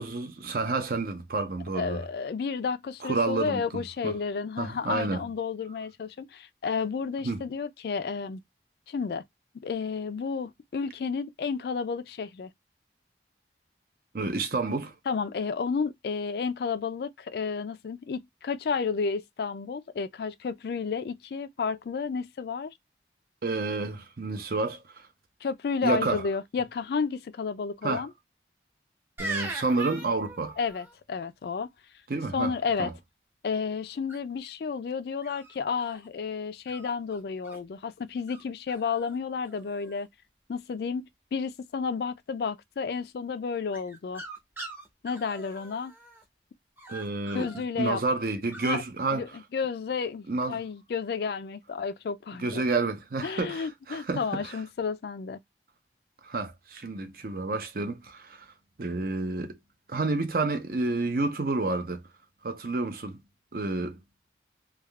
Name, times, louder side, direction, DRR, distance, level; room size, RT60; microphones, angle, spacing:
voice 1, 0.0-2.0 3.0-3.6 4.0-4.1 4.6-5.2 7.2-7.4 14.1-14.9 23.4-25.1 25.8-26.2 27.8-28.1 29.2-30.6 32.1-32.9 46.9-47.5 47.8-49.3 50.3-50.6 52.4-54.6 56.2-58.5 58.8-59.6 59.9-62.0 62.4-63.2 63.5-64.0, right 3 dB, 55° right, 0.6 m, -29 dB
voice 2, 1.7-8.4 8.9-9.2 9.5-12.5 15.1-22.7 25.4-28.1 30.6-31.7 32.3-32.9 33.4-40.1 40.5-44.2 45.0-45.9 47.3-48.0 48.6-48.8 49.1-49.3 49.5-52.6 53.2-55.4, left 5 dB, 60° left, 0.3 m, -31 dB
sound 1, 29.2-30.9 34.1-34.5 35.2-36.1 36.7-37.6 38.3-38.4 38.7-39.2 39.4-40.0 43.7-46.2 46.8-47.6 48.5-48.7, right 2 dB, 10° right, 0.6 m, -41 dB
3.4 x 2.3 x 2.2 m
head